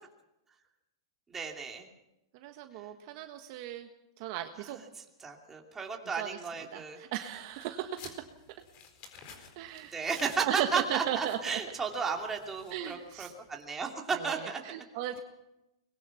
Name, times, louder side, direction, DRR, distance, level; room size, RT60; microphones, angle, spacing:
voice 1, 1.3-1.9 4.6-7.0 9.9-14.6, right 5 dB, 10° right, 2 dB, 2.8 m, -34 dB
voice 2, 2.3-3.9 4.2-4.8 6.2-6.3 6.7-8.0 9.6-9.9 10.4-11.6 12.7-13.3 14.1-15.2, right 12 dB, 45° right, 6 dB, 1.5 m, -36 dB
sound 1, 7.3-13.5, left 5 dB, 35° left, 4.2 m, -54 dB
23.5 x 21.0 x 5.9 m, 0.91 s
hypercardioid pair, 150°, 3 cm